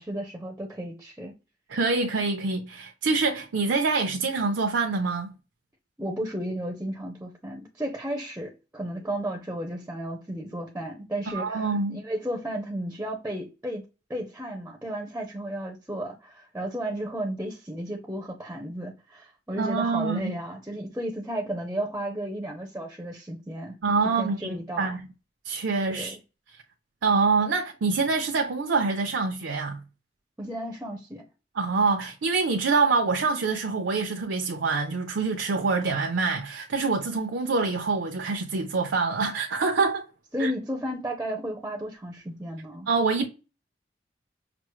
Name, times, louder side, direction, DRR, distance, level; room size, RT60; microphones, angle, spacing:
voice 1, 0.0-1.3 6.0-13.8 14.1-23.8 24.0-25.0 25.9-26.2 30.4-31.2 40.3-42.9, right 1 dB, 10° right, 0.5 m, -33 dB
voice 2, 1.7-5.3 11.3-12.0 19.6-20.3 23.8-25.0 25.4-26.2 27.0-29.8 31.5-40.0 40.4-40.5 42.9-43.3, right 4 dB, 80° right, 0.5 m, -25 dB
5.9 x 2.0 x 3.0 m
head